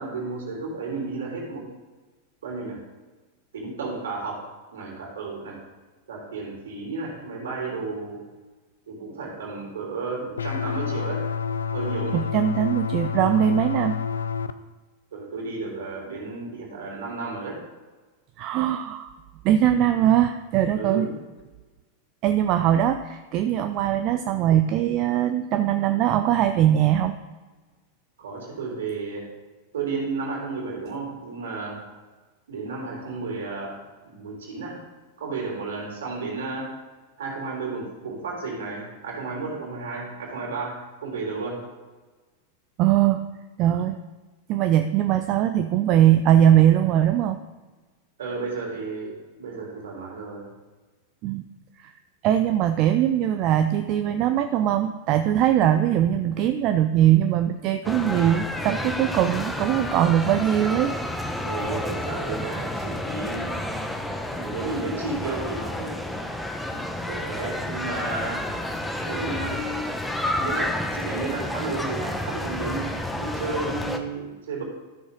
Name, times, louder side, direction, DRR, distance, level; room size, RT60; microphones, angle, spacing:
voice 1, 0.0-1.7 2.4-2.8 3.5-4.4 4.7-5.6 6.1-8.2 8.9-11.2 11.7-12.2 15.1-17.6 20.7-21.2 28.2-29.3 29.7-31.8 32.5-34.8 35.2-36.7 37.2-41.6 48.2-49.1 49.4-50.5 61.4-63.9 64.3-66.0 67.0-68.5 69.0-69.9 70.3-74.6, right 3 dB, 60° right, -2 dB, 3.2 m, -33 dB
sound 1, 10.4-14.5, left 6 dB, 70° left, 0.4 m, -28 dB
voice 2, 12.1-14.0 18.4-19.1 19.4-21.1 22.2-27.1 42.8-43.2 43.6-44.0 44.5-47.4 51.2-51.4 51.8-51.9 52.2-60.9, right 11 dB, 40° right, 8 dB, 0.5 m, -21 dB
sound 2, 57.8-74.0, left 1 dB, 5° left, 0.9 m, -30 dB
13.5 x 6.4 x 3.8 m, 1.3 s
figure-of-eight pair, 90°, 0 cm